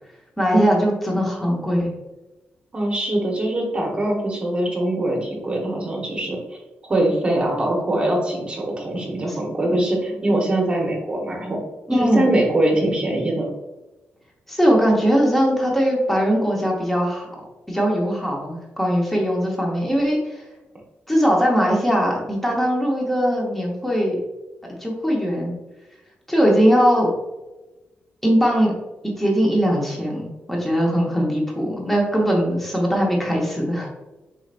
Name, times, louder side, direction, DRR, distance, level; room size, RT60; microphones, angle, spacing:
voice 1, 0.4-1.9 11.9-12.3 14.5-17.3 17.7-20.2 21.1-24.2 24.8-25.5 26.3-27.1 28.2-28.7 29.0-34.0, equal, 5° left, -2 dB, 1.0 m, -20 dB
voice 2, 2.7-6.6 6.8-11.6 11.9-13.5, right 1 dB, 30° right, -1 dB, 1.0 m, -22 dB
4.9 x 4.2 x 2.5 m, 1.1 s
wide cardioid pair, 130°, 4 cm